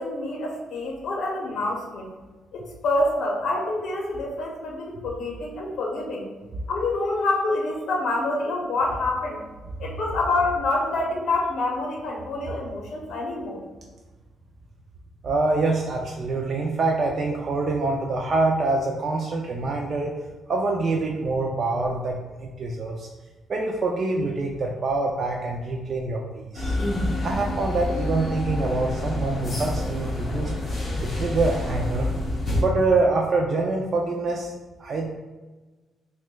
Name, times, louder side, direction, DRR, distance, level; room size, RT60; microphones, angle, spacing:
voice 1, 0.0-2.1 2.5-6.2 6.7-9.4 9.8-13.6, left 2 dB, 60° left, -1 dB, 0.6 m, -27 dB
voice 2, 15.2-20.1 20.5-23.1 23.5-26.8 27.2-30.5 31.0-32.1 32.6-34.5 34.8-35.1, right 3 dB, 40° right, 0 dB, 0.3 m, -25 dB
sound 1, 26.5-32.6, left 1 dB, 30° left, 0.8 m, -28 dB
5.8 x 2.1 x 2.2 m, 1.2 s
cardioid pair, 155°, 0 cm